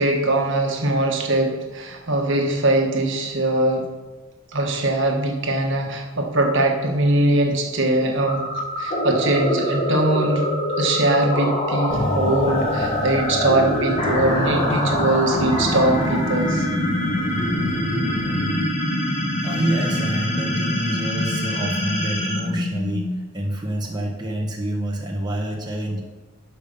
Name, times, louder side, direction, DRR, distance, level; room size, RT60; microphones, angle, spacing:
voice 1, 0.0-3.9 4.5-8.4 8.8-16.7, right 2 dB, 60° right, 1 dB, 1.5 m, -21 dB
sound 1, 8.3-23.4, left 1 dB, 30° left, 1.8 m, -24 dB
sound 2, 11.9-18.7, left 1 dB, 70° left, 3.6 m, -29 dB
voice 2, 19.4-26.0, right 1 dB, 20° right, -1 dB, 1.2 m, -27 dB
12.0 x 5.6 x 5.4 m, 1.2 s
head